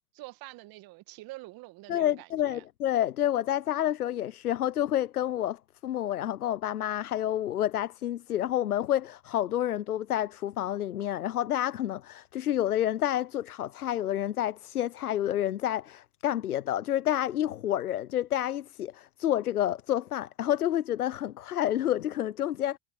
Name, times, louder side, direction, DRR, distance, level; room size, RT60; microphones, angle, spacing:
voice 1, 0.1-2.6, right 20 dB, 55° right, 1.9 m, -46 dB
voice 2, 1.9-22.8, left 12 dB, 90° left, 0.7 m, -29 dB
hypercardioid pair, 75°, 43 cm